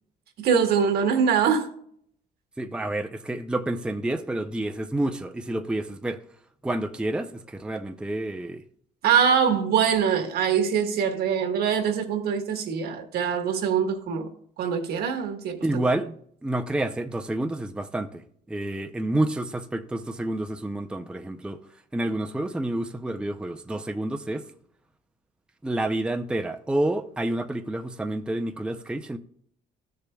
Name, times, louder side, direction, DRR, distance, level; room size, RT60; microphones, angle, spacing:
voice 1, 0.4-1.7 9.0-14.3 14.6-15.6, right 7 dB, 70° right, 1.4 m, -23 dB
voice 2, 2.6-6.2 6.6-8.6 15.6-16.1 16.4-21.6 21.9-24.5 25.6-29.2, right 1 dB, 5° right, 0.5 m, -29 dB
13.5 x 6.8 x 2.3 m
cardioid pair, 110°, 17 cm